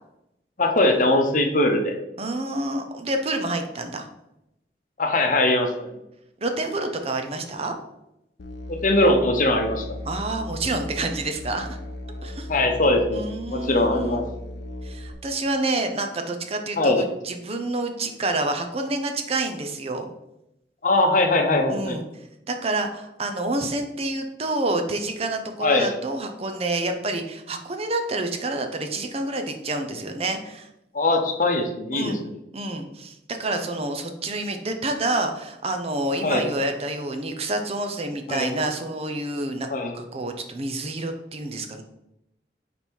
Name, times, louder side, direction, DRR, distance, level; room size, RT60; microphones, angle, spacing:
voice 1, 0.6-2.0 5.0-5.9 8.7-9.9 12.5-13.3 13.5-14.2 16.8-17.0 20.8-22.0 25.6-25.9 30.9-32.3 36.2-36.4 38.3-38.5 39.7-39.9, left 2 dB, 50° left, 4 dB, 0.8 m, -21 dB
voice 2, 2.2-4.1 6.4-7.7 10.1-11.8 12.2-12.5 13.1-14.2 14.8-20.1 21.7-22.0 22.5-30.7 31.9-32.2 32.5-39.7 39.9-41.8, right 2 dB, 35° right, 6 dB, 0.6 m, -28 dB
Musical instrument, 8.4-15.1, left 1 dB, 80° left, 0.6 m, -36 dB
5.3 x 4.3 x 4.5 m, 0.87 s
head